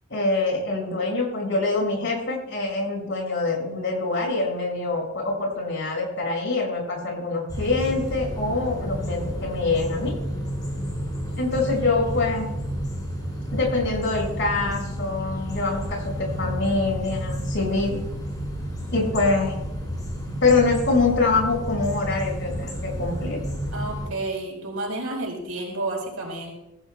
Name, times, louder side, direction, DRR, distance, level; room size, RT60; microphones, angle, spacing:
voice 1, 0.1-10.1 11.4-12.5 13.5-18.0 18.9-19.5 20.4-23.4, left 3 dB, 55° left, 0 dB, 5.7 m, -25 dB
sound 1, 7.5-24.1, equal, 20° left, 5.1 m, -31 dB
voice 2, 23.7-26.5, right 2 dB, 75° right, 0 dB, 4.4 m, -30 dB
23.0 x 15.5 x 2.3 m, 0.90 s
head